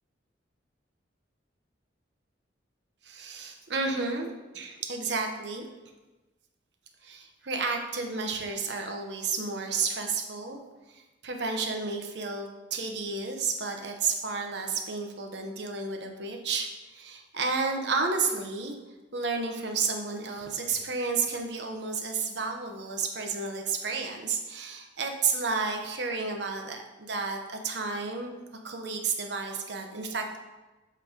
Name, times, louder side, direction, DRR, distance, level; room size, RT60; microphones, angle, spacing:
voice 1, 3.0-5.6 7.0-10.6 10.9-18.7 19.1-28.3 28.6-30.4, right 4 dB, 65° right, 3 dB, 0.9 m, -31 dB
7.6 x 3.3 x 5.0 m, 1.1 s
head